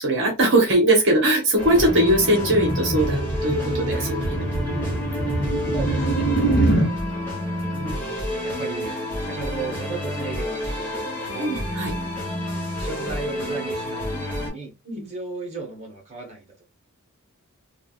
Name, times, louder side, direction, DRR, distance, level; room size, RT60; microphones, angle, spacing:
voice 1, 0.0-5.1 7.7-8.2 11.4-11.9 14.9-15.1, right 1 dB, 55° right, 0.9 m, -21 dB
sound 1, 1.6-6.9, right 2 dB, 45° left, 1.0 m, -24 dB
sound 2, 1.6-14.5, left 1 dB, 10° left, 1.1 m, -29 dB
voice 2, 5.6-6.8 8.4-9.0 9.2-11.5 12.8-16.6, right 4 dB, 30° right, 1.0 m, -36 dB
3.4 x 2.3 x 2.3 m
head